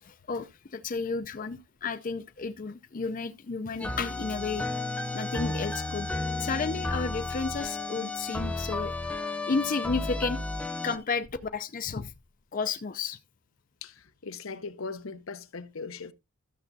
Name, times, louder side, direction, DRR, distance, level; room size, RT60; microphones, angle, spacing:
voice 1, 0.0-4.7 5.1-6.1 6.4-10.4 10.8-11.3 11.5-12.1 12.5-13.2, left 4 dB, 40° left, 0.5 m, -32 dB
sound 1, 3.8-11.0, left 2 dB, 5° left, 0.9 m, -33 dB
voice 2, 13.8-16.1, left 4 dB, 75° left, 0.8 m, -39 dB
13.0 x 7.0 x 2.7 m
head